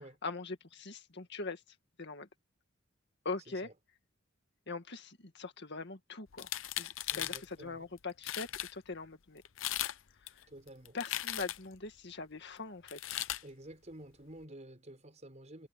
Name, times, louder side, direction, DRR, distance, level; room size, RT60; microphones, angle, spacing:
voice 1, 0.0-1.6 2.0-2.3 3.2-3.7 4.7-6.5 6.8-9.4 10.2-10.5 10.9-13.2, left 3 dB, 60° left, 2.0 m, -42 dB
sound 1, 6.3-7.5 8.0-8.1 8.2-8.7 9.5-10.0 10.3-11.8 12.9-13.4, left 13 dB, 75° left, 0.7 m, -37 dB
voice 2, 7.1-7.8 10.5-11.0 13.4-15.7, right 1 dB, 35° right, 5.1 m, -51 dB
head